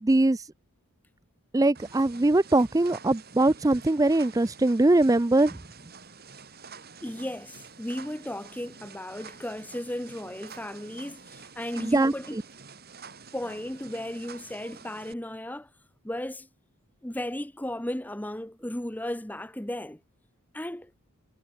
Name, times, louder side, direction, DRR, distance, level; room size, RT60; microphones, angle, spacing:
voice 1, 0.0-0.4 1.5-5.6 11.8-12.4, right 2 dB, 15° right, 0.4 m, -22 dB
sound 1, 1.7-15.1, right 5 dB, 45° right, 5.1 m, -48 dB
voice 2, 7.0-12.4 13.3-15.7 16.0-16.5 17.0-20.0 20.5-20.9, left 1 dB, 10° left, 0.8 m, -35 dB
head